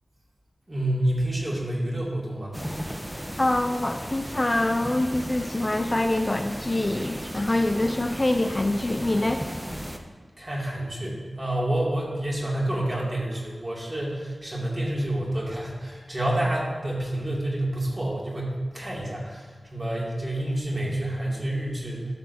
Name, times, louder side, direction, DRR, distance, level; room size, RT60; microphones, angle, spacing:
voice 1, 0.7-2.5 10.4-19.4 19.7-22.1, right 1 dB, 30° right, -4 dB, 2.4 m, -28 dB
sound 1, 2.5-10.0, equal, 10° right, 0.8 m, -35 dB
voice 2, 3.4-9.4, left 1 dB, 30° left, 6 dB, 0.4 m, -25 dB
12.5 x 6.7 x 2.7 m, 1.5 s
wide cardioid pair, 70°, 0 cm